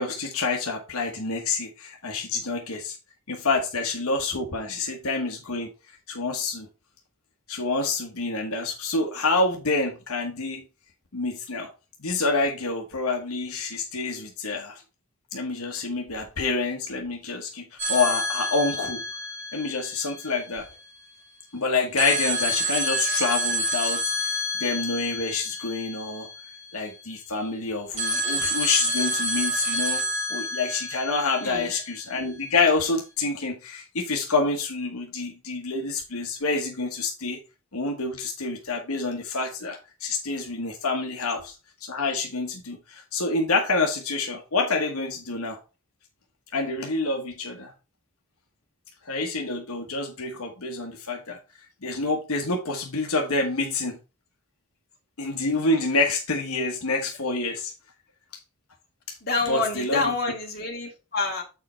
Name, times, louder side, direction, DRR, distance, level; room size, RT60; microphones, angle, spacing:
voice 1, 0.0-2.9 3.3-5.7 6.1-6.7 7.5-10.6 11.1-11.7 12.0-14.8 15.3-19.0 19.5-20.6 21.5-26.3 26.7-30.0 30.3-37.4 37.7-41.5 41.8-45.6 46.5-47.7 49.1-51.4 51.8-54.0 55.2-57.7 59.1-59.2 59.5-60.0, left 3 dB, 80° left, 1.2 m, -27 dB
sound 1, 17.8-20.7 22.0-26.9 28.0-32.2, equal, 30° right, 1.9 m, -28 dB
voice 2, 31.4-31.7 59.2-61.4, left 3 dB, 45° left, 2.2 m, -28 dB
7.3 x 4.8 x 4.3 m
head